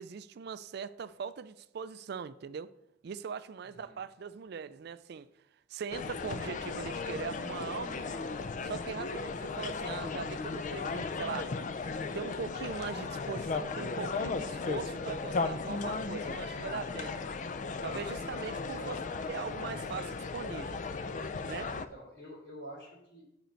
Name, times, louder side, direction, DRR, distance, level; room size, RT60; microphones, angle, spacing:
voice 1, 0.0-2.7 3.0-5.3 5.7-8.0 8.6-11.6 12.1-17.2 17.8-19.0 19.3-20.8 21.4-21.8, right 6 dB, 60° right, 0.4 m, -40 dB
voice 2, 3.6-4.0 18.6-19.0 21.9-23.2, equal, 70° left, 3.4 m, -48 dB
sound 1, 5.9-21.9, left 4 dB, 40° left, 0.4 m, -36 dB
9.3 x 5.2 x 4.5 m
head